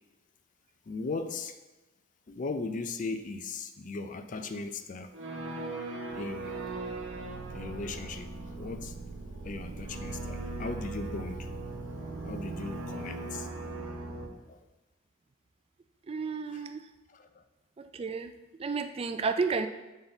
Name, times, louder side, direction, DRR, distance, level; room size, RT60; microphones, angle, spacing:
voice 1, 0.9-1.5 2.3-5.1 6.1-6.5 7.5-8.9 9.4-11.5 12.2-13.5 14.5-14.6 16.5-16.6 17.1-17.3, left 3 dB, 40° left, 8 dB, 0.4 m, -38 dB
sound 1, 5.1-14.3, right 2 dB, 85° right, 0.9 m, -39 dB
voice 2, 16.1-16.8 17.8-18.3 18.6-19.7, right 4 dB, 30° right, 8 dB, 0.3 m, -31 dB
7.2 x 4.0 x 3.9 m, 1.1 s
head